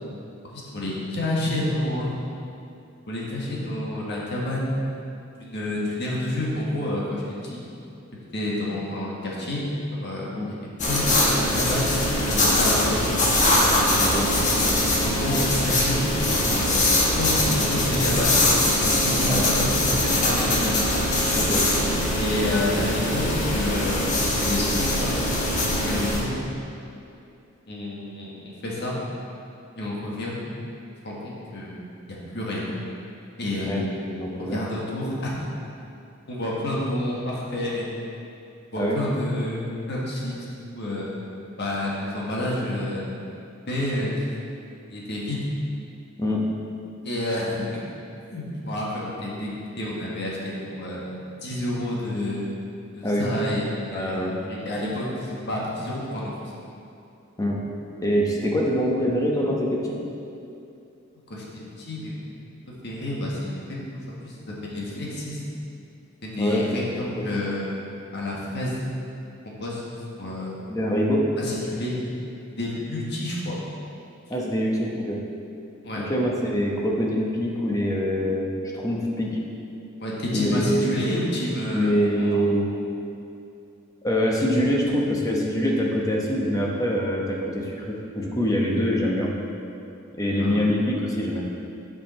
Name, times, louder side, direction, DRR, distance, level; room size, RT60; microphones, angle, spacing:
voice 1, 0.4-2.2 3.1-4.7 5.4-7.2 7.5-7.6 8.3-9.6 10.0-10.6 10.9-12.0 12.2-13.1 15.0-16.8 17.2-18.4 19.0-19.7 20.0-20.7 22.2-24.1 24.4-25.1 25.8-26.3 27.6-28.9 29.8-30.4 31.0-31.8 32.1-32.7 33.4-33.8 34.3-35.5 36.3-37.8 38.7-39.6 39.9-40.3 40.7-41.1 41.6-43.1 43.7-44.1 44.9-45.4 47.0-47.8 48.3-51.0 51.4-52.5 52.9-56.5 61.3-61.4 61.8-62.4 62.8-65.5 66.2-67.7 68.1-68.8 69.4-69.8 70.2-70.6 71.4-71.9 72.6-73.5 75.8-76.0 80.0-82.6 90.4-90.6, left 1 dB, 55° left, -5 dB, 1.5 m, -29 dB
sound 1, 10.8-26.2, left 1 dB, 35° left, 1.2 m, -22 dB
voice 2, 14.0-14.3 19.2-19.5 21.3-21.6 33.7-34.6 38.8-39.0 46.2-46.5 53.0-53.2 53.9-54.4 57.4-57.6 58.0-60.0 66.4-66.6 67.2-67.3 70.7-71.3 74.3-75.2 76.0-79.4 80.3-80.9 81.7-82.7 84.0-89.3 90.2-91.4, equal, 15° left, -2 dB, 0.9 m, -24 dB
8.4 x 5.5 x 4.3 m, 2.6 s
head